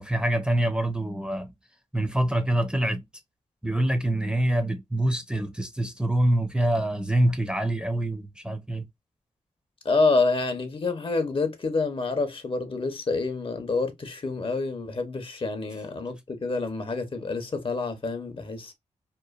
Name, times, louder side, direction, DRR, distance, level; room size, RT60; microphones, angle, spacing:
voice 1, 0.0-1.5 1.9-3.0 3.6-8.8, right 1 dB, 5° right, 0.6 m, -25 dB
voice 2, 9.8-18.7, left 3 dB, 40° left, 0.7 m, -27 dB
3.0 x 2.2 x 2.2 m
cardioid pair, 55°, 14 cm